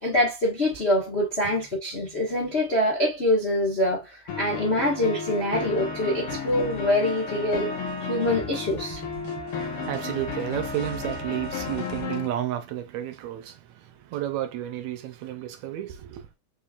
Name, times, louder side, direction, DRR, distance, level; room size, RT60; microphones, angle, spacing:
voice 1, 0.0-7.7 8.1-9.0, left 1 dB, 90° left, 0.5 m, -25 dB
sound 1, 4.3-12.3, left 5 dB, 60° left, 1.6 m, -33 dB
sound 2, 6.5-12.0, right 5 dB, 50° right, 2.2 m, -43 dB
voice 2, 9.5-16.3, right 12 dB, 75° right, 1.8 m, -32 dB
5.2 x 3.6 x 2.4 m
omnidirectional pair, 3.5 m